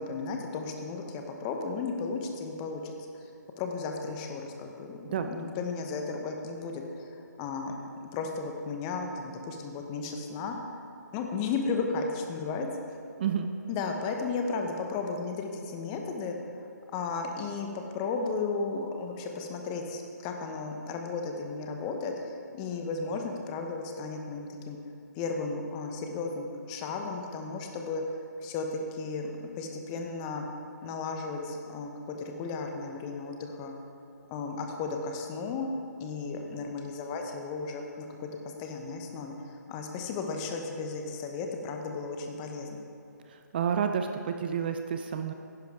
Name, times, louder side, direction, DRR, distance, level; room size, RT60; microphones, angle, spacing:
voice 1, 0.0-2.9 3.6-7.1 7.4-10.5 11.1-12.7 13.7-16.4 16.9-22.1 22.5-24.8 25.2-28.0 28.4-30.4 30.8-33.7 34.3-35.7 36.0-38.3 38.6-42.8, left 4 dB, 20° left, 3 dB, 0.8 m, -34 dB
voice 2, 13.2-13.5 43.5-45.3, right 7 dB, 30° right, 7 dB, 0.4 m, -29 dB
10.5 x 10.0 x 3.5 m, 2.7 s
figure-of-eight pair, 145°, 10 cm